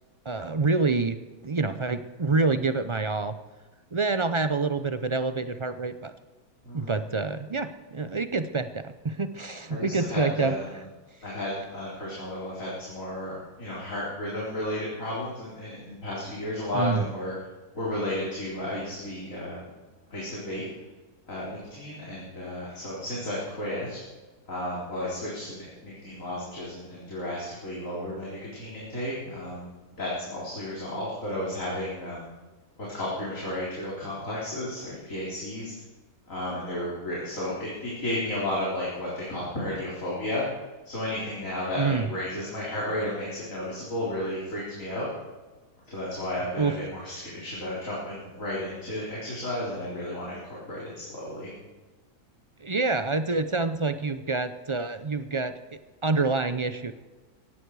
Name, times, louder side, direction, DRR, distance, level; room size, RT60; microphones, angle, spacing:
voice 1, 0.2-1.2 1.4-3.3 3.9-6.1 6.7-10.6 16.7-17.0 41.8-42.1 46.5-46.8 52.6-55.5 56.0-56.9, right 3 dB, 45° right, 11 dB, 0.3 m, -27 dB
voice 2, 9.7-10.8 11.2-17.3 17.7-19.7 20.1-20.6 21.3-24.0 24.5-29.7 30.0-32.3 32.9-35.7 36.3-40.4 40.8-45.1 45.9-51.5, left 1 dB, 60° left, -7 dB, 4.5 m, -33 dB
17.5 x 15.0 x 4.8 m, 1.3 s
omnidirectional pair, 1.6 m